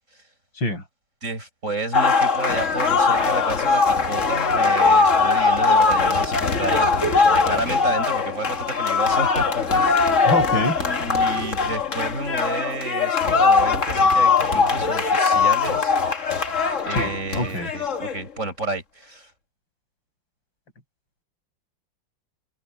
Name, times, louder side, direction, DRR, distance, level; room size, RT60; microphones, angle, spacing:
voice 1, 1.2-6.9 7.3-10.0 10.7-16.3 16.9-19.3, right 2 dB, 40° right, 7.4 m, -31 dB
sound 1, 1.9-18.2, left 4 dB, 40° left, 1.9 m, -20 dB
voice 2, 10.2-10.8 16.9-17.7, left 1 dB, 80° left, 8.1 m, -25 dB
omnidirectional pair, 2.1 m